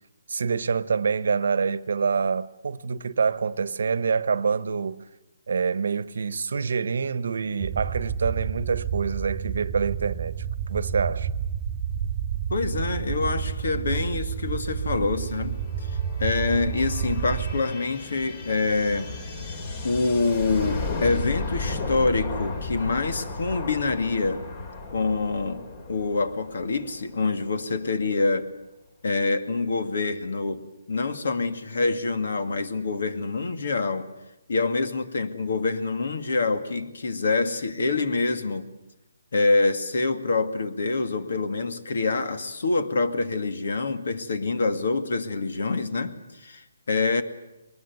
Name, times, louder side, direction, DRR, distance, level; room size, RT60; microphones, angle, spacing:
voice 1, 0.3-5.1 5.5-11.3, right 5 dB, 65° right, 1.1 m, -26 dB
sound 1, 7.6-17.6, right 8 dB, 25° right, 0.9 m, -30 dB
voice 2, 12.5-19.1 19.8-24.4 24.9-28.5 29.0-30.6 30.9-34.1 34.5-38.7 39.3-47.2, left 3 dB, 65° left, 2.3 m, -26 dB
sound 2, 14.4-27.8, left 3 dB, 30° left, 2.9 m, -35 dB
23.0 x 20.5 x 9.5 m
hypercardioid pair, 165°, 0 cm